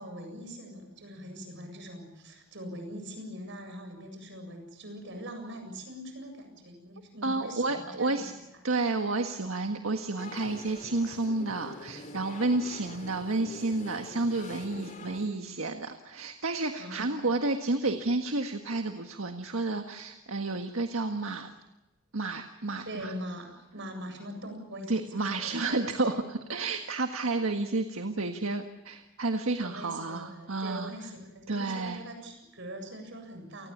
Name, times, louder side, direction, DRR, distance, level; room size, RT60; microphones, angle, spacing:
voice 1, 0.0-8.2 8.5-8.6 16.8-17.3 22.9-26.0 27.3-27.5 29.6-33.7, equal, 65° right, 6 dB, 7.7 m, -42 dB
voice 2, 7.2-8.3 8.6-21.5 22.1-23.1 24.9-30.9 31.5-32.0, right 2 dB, 80° right, 5 dB, 1.6 m, -31 dB
sound 1, 10.2-15.3, left 2 dB, 40° left, 3.4 m, -45 dB
29.0 x 20.0 x 7.3 m, 1.0 s
head